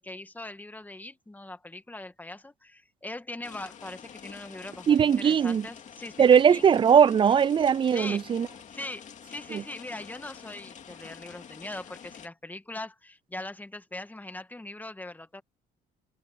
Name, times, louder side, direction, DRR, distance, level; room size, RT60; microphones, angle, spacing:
voice 1, 0.0-6.7 7.9-8.2 8.7-15.4, left 2 dB, 10° left, 1.8 m, -41 dB
sound 1, 3.4-12.3, left 8 dB, 45° left, 2.4 m, -47 dB
voice 2, 4.9-5.7 6.2-8.5 9.5-9.6, right 7 dB, 30° right, 0.4 m, -20 dB
cardioid pair, 110°, 17 cm